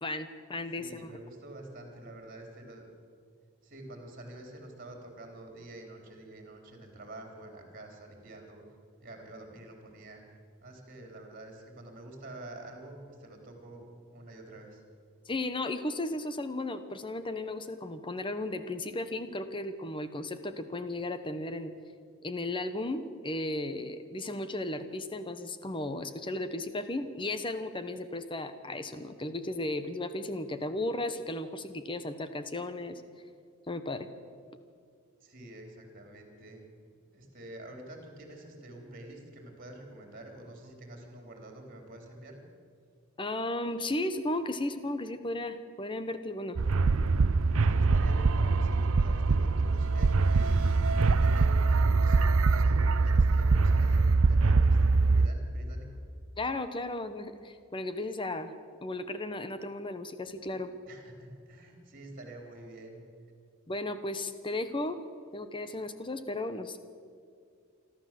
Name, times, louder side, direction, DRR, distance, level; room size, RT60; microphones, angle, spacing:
voice 1, 0.0-1.2 15.3-21.7 22.2-33.0 33.7-34.1 43.2-46.6 56.4-58.5 58.8-60.7 63.7-65.0 65.3-66.8, left 2 dB, 20° left, 10 dB, 1.0 m, -35 dB
voice 2, 0.7-2.9 3.6-8.6 9.0-10.2 10.6-13.8 14.1-14.7 35.2-36.6 37.1-42.4 47.6-55.9 60.9-63.0, right 1 dB, 40° right, 2 dB, 3.9 m, -47 dB
sound 1, 46.6-55.3, right 3 dB, 65° right, 0.6 m, -23 dB
27.5 x 12.5 x 7.6 m, 2.3 s
head